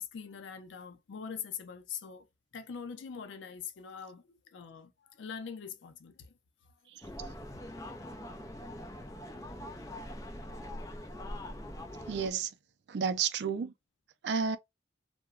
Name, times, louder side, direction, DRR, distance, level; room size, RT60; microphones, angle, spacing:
voice 1, 0.0-2.3 2.5-6.3 6.6-6.7 9.8-11.0, left 7 dB, 90° left, 0.4 m, -44 dB
sound 1, 7.0-12.3, left 1 dB, 20° left, 0.5 m, -43 dB
voice 2, 12.1-12.6 12.9-13.7 14.2-14.6, right 6 dB, 70° right, 0.4 m, -31 dB
2.8 x 2.1 x 2.3 m
head